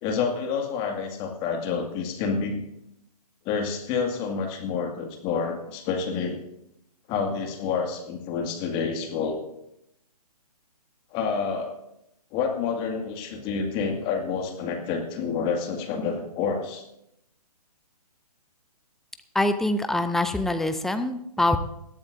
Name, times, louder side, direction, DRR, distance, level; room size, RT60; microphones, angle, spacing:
voice 1, 0.0-2.6 3.4-6.4 7.1-9.4 11.1-11.8 12.3-16.8, left 5 dB, 25° left, 3 dB, 2.1 m, -28 dB
voice 2, 19.4-21.6, left 2 dB, ahead, 9 dB, 0.4 m, -24 dB
21.0 x 12.0 x 2.7 m, 0.80 s
figure-of-eight pair, 135°, 20 cm